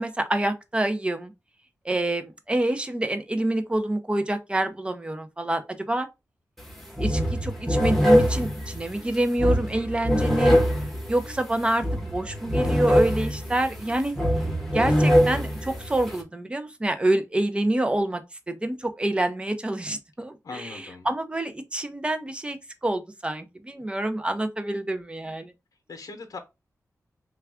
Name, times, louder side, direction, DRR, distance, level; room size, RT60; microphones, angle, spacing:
voice 1, 0.0-1.3 1.8-6.1 7.0-10.6 11.1-14.1 14.7-18.2 18.5-22.6 22.8-25.5, right 1 dB, 15° right, 0.5 m, -27 dB
sound 1, 6.6-6.7 7.0-16.2, equal, ahead, 0.9 m, -23 dB
voice 2, 20.4-21.1 25.9-26.4, left 4 dB, 70° left, 0.8 m, -39 dB
3.4 x 2.4 x 3.4 m
wide cardioid pair, 150°, 6 cm